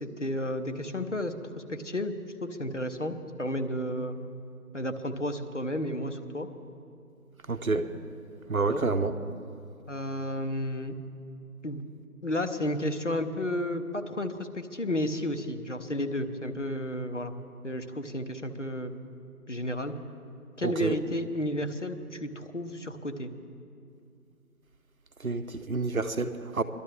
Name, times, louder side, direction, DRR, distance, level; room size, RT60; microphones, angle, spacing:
voice 1, 0.0-2.1 2.4-4.2 4.7-6.5 8.7-8.8 9.9-10.9 11.6-11.8 12.2-17.3 17.6-19.0 19.5-19.9 20.6-23.3, left 1 dB, 50° left, 8 dB, 0.8 m, -32 dB
voice 2, 7.5-7.9 8.5-9.2 20.6-21.0 25.2-26.6, right 3 dB, 60° right, 10 dB, 0.8 m, -28 dB
22.5 x 12.0 x 3.3 m, 2.5 s
figure-of-eight pair, 175°, 46 cm